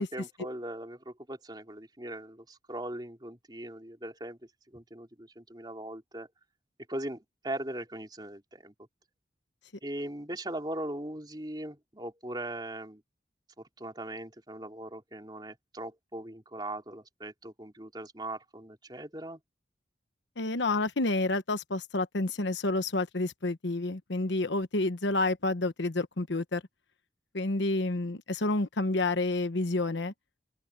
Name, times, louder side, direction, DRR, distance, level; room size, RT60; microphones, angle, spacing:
voice 1, 0.0-4.4 4.7-6.3 6.9-8.9 9.8-13.0 13.6-19.4, right 1 dB, 25° right, 3.8 m, -40 dB
voice 2, 20.4-26.6 27.3-30.1, left 2 dB, 80° left, 1.1 m, -29 dB
open air
head